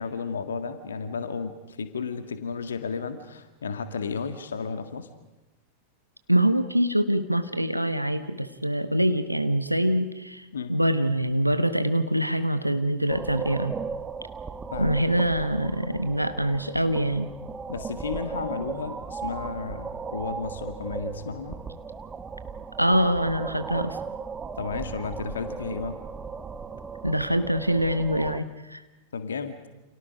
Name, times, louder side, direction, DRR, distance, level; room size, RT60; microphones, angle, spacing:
voice 1, 0.0-5.1 10.5-10.8 14.7-15.0 17.7-21.6 24.5-26.0 29.1-29.7, left 5 dB, 70° left, 9 dB, 1.8 m, -33 dB
voice 2, 6.3-13.8 14.8-17.3 22.8-24.0 27.0-28.8, equal, 90° right, 10 dB, 1.2 m, -24 dB
sound 1, 13.1-28.4, right 5 dB, 20° right, 1.2 m, -36 dB
30.0 x 28.5 x 5.2 m, 1.0 s
figure-of-eight pair, 90°, 0 cm